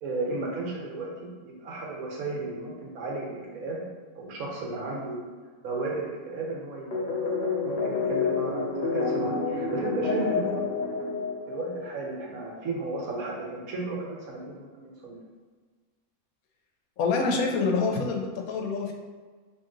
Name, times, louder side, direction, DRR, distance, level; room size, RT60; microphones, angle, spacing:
voice 1, 0.0-5.2 5.6-7.1 7.6-11.1 11.5-15.2, right 2 dB, 80° right, -2 dB, 1.2 m, -34 dB
sound 1, 6.9-12.1, left 4 dB, 45° left, 0.8 m, -29 dB
voice 2, 17.0-18.9, left 4 dB, 85° left, 2 dB, 1.0 m, -26 dB
3.0 x 2.6 x 3.7 m, 1.5 s
omnidirectional pair, 1.5 m